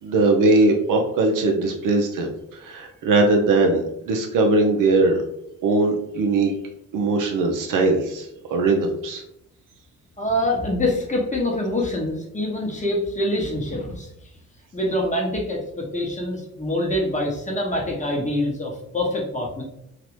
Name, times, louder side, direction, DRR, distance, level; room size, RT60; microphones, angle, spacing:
voice 1, 0.0-5.2 5.6-6.5 6.9-9.2, right 2 dB, 50° right, 2 dB, 0.6 m, -20 dB
voice 2, 10.2-14.1 14.7-19.6, left 1 dB, 20° left, -1 dB, 0.9 m, -25 dB
2.9 x 2.4 x 3.0 m, 0.78 s
hypercardioid pair, 45°, 40 cm